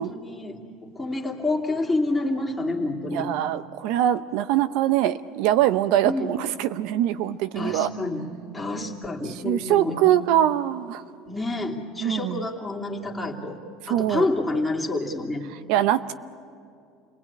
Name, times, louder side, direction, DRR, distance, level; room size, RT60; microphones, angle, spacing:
voice 1, 0.0-3.3 6.0-6.4 7.5-8.3 8.5-10.0 11.3-13.6 13.9-15.5, left 2 dB, 10° left, -2 dB, 2.8 m, -28 dB
voice 2, 3.1-7.9 9.4-11.0 12.0-12.5 13.9-14.3 15.7-16.1, right 12 dB, 70° right, 12 dB, 0.7 m, -23 dB
29.0 x 19.0 x 8.7 m, 2.5 s
cardioid pair, 130°, 0 cm